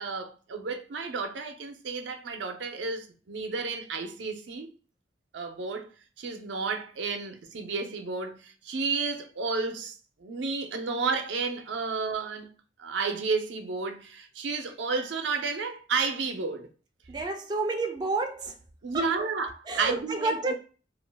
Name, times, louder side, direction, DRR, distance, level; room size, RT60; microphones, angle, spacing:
voice 1, 0.0-4.7 5.3-5.9 6.2-12.5 12.8-16.7 18.8-19.5 19.8-20.5, right 4 dB, 85° right, 0.5 m, -32 dB
voice 2, 17.1-18.6 18.9-19.3 19.7-20.5, right 3 dB, 25° right, 0.3 m, -30 dB
2.4 x 2.2 x 3.3 m
head